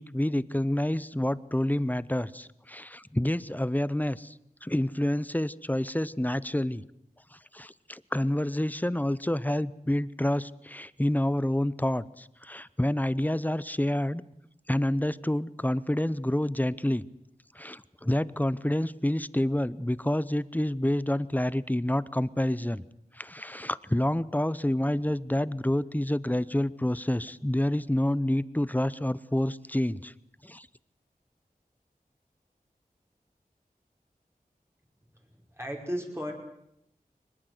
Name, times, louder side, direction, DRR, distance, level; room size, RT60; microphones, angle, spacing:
voice 1, 0.0-4.3 4.6-6.8 7.3-14.2 14.7-17.0 17.5-22.8 23.1-30.1 30.4-30.7, left 1 dB, 10° left, 18 dB, 0.8 m, -28 dB
voice 2, 35.2-36.3, equal, 15° right, 1 dB, 5.2 m, -35 dB
23.0 x 20.5 x 8.0 m, 0.78 s
wide cardioid pair, 55°, 15 cm